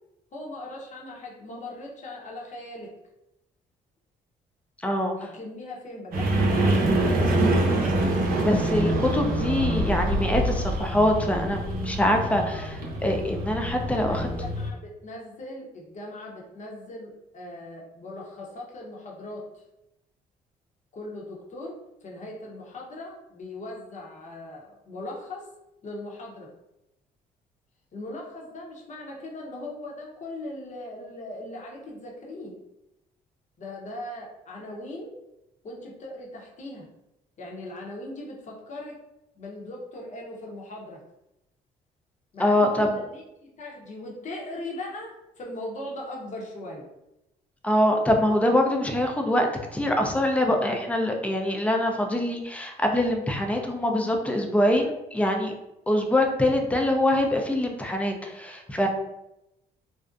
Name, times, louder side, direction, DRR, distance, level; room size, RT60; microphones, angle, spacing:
voice 1, 0.3-2.9 5.2-8.2 13.9-19.6 20.9-25.5 25.8-26.5 27.9-32.6 33.6-35.2 35.6-36.9 37.4-39.0 39.3-41.0 42.3-46.9, left 1 dB, 45° left, -2 dB, 0.8 m, -39 dB
voice 2, 4.8-5.2 7.7-7.8 8.4-14.3 42.4-42.9 47.6-55.5 55.9-58.9, left 1 dB, 10° left, 3 dB, 0.4 m, -24 dB
sound 1, 6.1-14.7, right 1 dB, 60° right, 0.7 m, -25 dB
2.5 x 2.0 x 2.4 m, 0.89 s
supercardioid pair, 75°, 17 cm